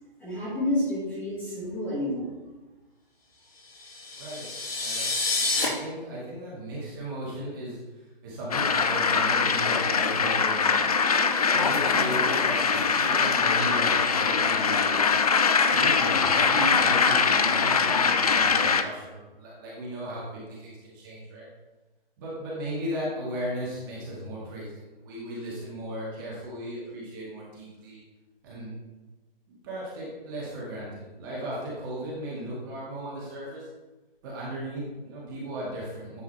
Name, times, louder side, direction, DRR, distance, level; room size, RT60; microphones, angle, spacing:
voice 1, 0.2-2.3, left 1 dB, 5° left, -10 dB, 1.9 m, -29 dB
sound 1, 3.8-5.7, left 3 dB, 75° left, 2.5 m, -28 dB
voice 2, 4.2-5.1 5.5-10.9 11.5-15.2 15.7-21.5 22.2-28.0 28.4-28.7 29.5-33.7 34.2-36.2, right 1 dB, 20° right, -7 dB, 1.9 m, -36 dB
sound 2, 8.5-18.8, left 5 dB, 40° left, 0.5 m, -22 dB
9.7 x 3.8 x 4.3 m, 1.1 s
hypercardioid pair, 160°, 30 cm